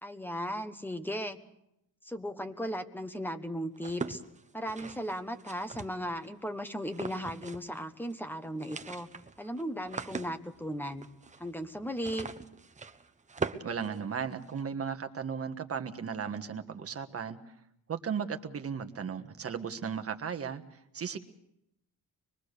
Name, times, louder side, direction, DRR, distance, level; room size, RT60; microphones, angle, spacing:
voice 1, 0.0-1.4 2.0-4.2 4.5-9.1 9.4-11.1 11.4-12.3, equal, 5° left, 8 dB, 1.2 m, -36 dB
sound 1, 3.8-6.3 6.9-7.8 8.0-8.1 8.4-14.6, right 4 dB, 20° right, 0.9 m, -41 dB
voice 2, 13.6-17.4 17.9-20.6 20.9-21.2, right 6 dB, 40° right, 7 dB, 1.4 m, -36 dB
24.0 x 22.0 x 6.7 m, 0.79 s
wide cardioid pair, 165°, 37 cm